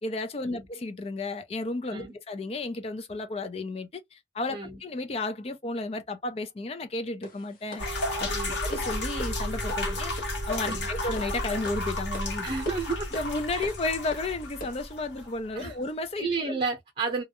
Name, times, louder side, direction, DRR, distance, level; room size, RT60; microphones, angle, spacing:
voice 1, 0.0-7.8 8.2-8.3 8.6-10.1 10.5-12.5 13.1-16.5, left 2 dB, 35° left, 0.4 m, -33 dB
voice 2, 4.5-4.8 8.3-8.6 9.9-10.0 10.6-10.9 12.4-13.1 13.5-13.7 15.6-15.7 16.2-17.2, right 4 dB, 35° right, 0.7 m, -32 dB
sound 1, 7.2-14.9, equal, 50° left, 0.8 m, -43 dB
sound 2, 7.8-15.4, left 1 dB, 75° left, 1.0 m, -33 dB
Wind instrument woodwind instrument, 7.8-12.9, right 3 dB, 80° right, 0.4 m, -42 dB
2.3 x 2.0 x 2.8 m
head